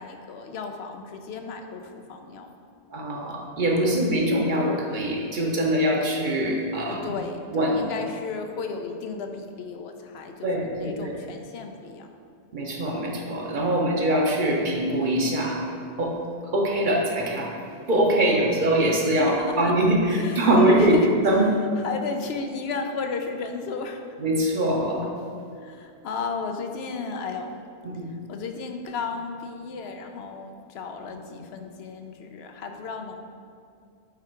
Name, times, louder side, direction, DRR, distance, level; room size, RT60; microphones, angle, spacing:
voice 1, 0.0-2.5 3.7-4.1 6.9-12.1 13.6-13.9 18.2-18.5 19.1-19.7 20.1-21.1 21.8-24.2 25.6-27.5 28.0-33.2, left 4 dB, 80° left, 5 dB, 0.8 m, -34 dB
voice 2, 2.9-7.1 7.5-7.8 10.4-11.1 12.5-15.6 16.0-16.2 16.5-17.5 17.9-21.0 21.2-21.5 24.2-25.1 27.8-28.1, right 1 dB, 50° right, -1 dB, 0.9 m, -23 dB
7.2 x 3.5 x 4.4 m, 2.4 s
omnidirectional pair, 1.1 m